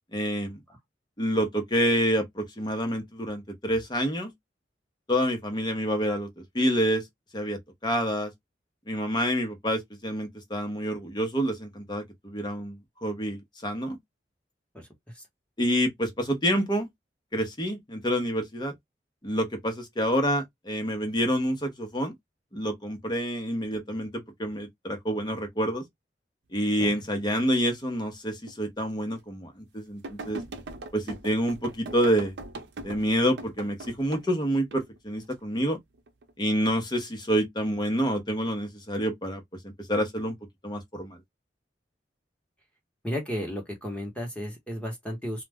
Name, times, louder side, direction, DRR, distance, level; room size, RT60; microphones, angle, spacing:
voice 1, 0.1-0.6 1.2-4.3 5.1-6.3 6.5-7.0 7.3-8.3 8.9-14.0 15.6-16.9 17.3-18.7 19.2-22.1 22.5-25.8 26.5-30.4 30.9-32.3 32.8-35.8 36.4-40.3 40.6-41.2, equal, 25° left, 0.8 m, -28 dB
sound 1, 28.5-28.6 29.2-29.3 30.0-34.3 34.7-35.3 36.0-36.3, right 2 dB, 85° right, 0.6 m, -40 dB
voice 2, 43.0-45.4, equal, 10° left, 1.1 m, -33 dB
2.4 x 2.0 x 3.4 m
head